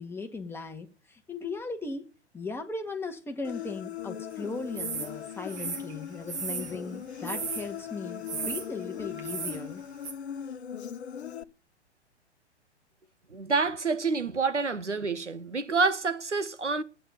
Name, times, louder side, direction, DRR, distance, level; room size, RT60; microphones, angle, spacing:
voice 1, 0.0-2.1 2.3-9.8, left 3 dB, 5° left, 1.8 m, -37 dB
Human voice, 3.4-11.4, left 9 dB, 65° left, 1.0 m, -39 dB
sound 1, 4.8-5.1 5.5-6.8 7.3-7.7 8.3-8.7 9.2-9.6 10.0-10.1, right 6 dB, 35° right, 2.9 m, -35 dB
voice 2, 13.3-16.8, right 4 dB, 90° right, 1.0 m, -28 dB
12.0 x 9.1 x 6.8 m
figure-of-eight pair, 110°, 34 cm